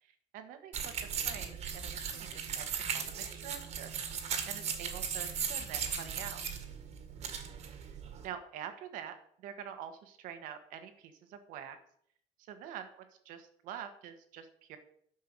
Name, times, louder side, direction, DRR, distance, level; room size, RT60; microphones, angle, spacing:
voice 1, 0.0-0.7 1.2-3.9 4.4-6.4 8.2-11.8 12.5-12.9 13.2-14.8, right 9 dB, 80° right, 8 dB, 1.6 m, -46 dB
sound 1, 0.7-8.3, right 7 dB, 55° right, 1.9 m, -38 dB
10.0 x 5.7 x 6.7 m, 0.66 s
cardioid pair, 120°, 14 cm